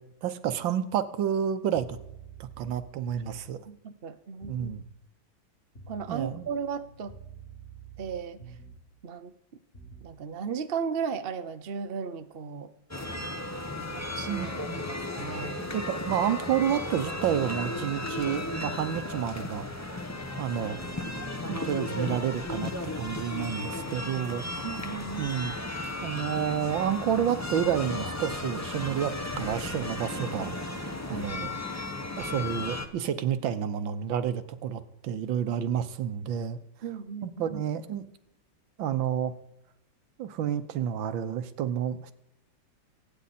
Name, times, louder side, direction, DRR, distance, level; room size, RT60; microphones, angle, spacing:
voice 1, 0.0-2.0 2.4-3.6 4.4-4.8 6.1-6.5 14.3-14.8 15.7-19.7 20.4-20.8 21.5-24.6 25.2-25.5 26.0-30.6 31.1-31.5 32.2-36.6 37.2-38.1 38.8-39.3 40.2-42.1, right 9 dB, 75° right, 12 dB, 1.7 m, -30 dB
sound 1, 1.7-3.6 4.4-4.8 5.8-8.9 9.7-10.1, right 5 dB, 30° left, 2.2 m, -48 dB
voice 2, 3.7-4.7 5.9-7.1 8.0-8.4 9.0-9.3 10.0-12.7 13.9-14.6 14.9-15.7 24.6-25.4 31.1-31.3 36.8-37.6, right 6 dB, 60° right, 9 dB, 0.6 m, -36 dB
sound 2, 12.9-32.9, left 2 dB, 10° left, 0.8 m, -35 dB
25.5 x 9.1 x 4.2 m, 0.87 s
omnidirectional pair, 2.1 m